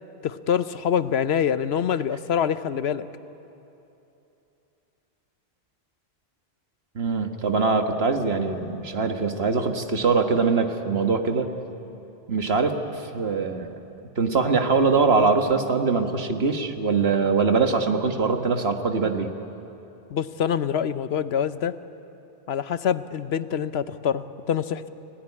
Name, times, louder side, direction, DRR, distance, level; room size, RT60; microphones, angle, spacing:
voice 1, 0.2-3.1 20.1-21.7 22.5-24.9, left 8 dB, 80° left, 13 dB, 1.0 m, -25 dB
voice 2, 6.9-11.5 12.3-13.7 14.2-19.3, right 4 dB, 75° right, 6 dB, 1.7 m, -23 dB
29.5 x 17.0 x 9.8 m, 2.9 s
omnidirectional pair, 1.1 m